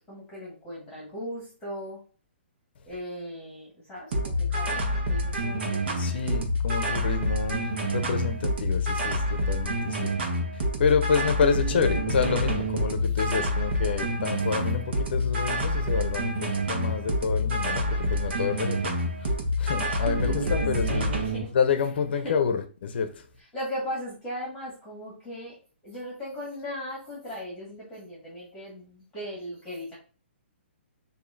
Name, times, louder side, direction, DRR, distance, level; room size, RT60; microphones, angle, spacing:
voice 1, 0.1-2.0 2.8-6.1 20.2-21.5 22.2-22.4 23.4-25.6 25.8-30.0, equal, 5° left, 1.7 m, -38 dB
sound 1, 4.1-21.4, equal, 60° right, 1.2 m, -27 dB
voice 2, 6.0-7.6 7.9-10.0 10.8-17.8 18.1-19.0 19.6-21.1 21.5-23.1, left 6 dB, 55° left, 0.6 m, -28 dB
6.9 x 2.7 x 2.6 m
hypercardioid pair, 160°, 7 cm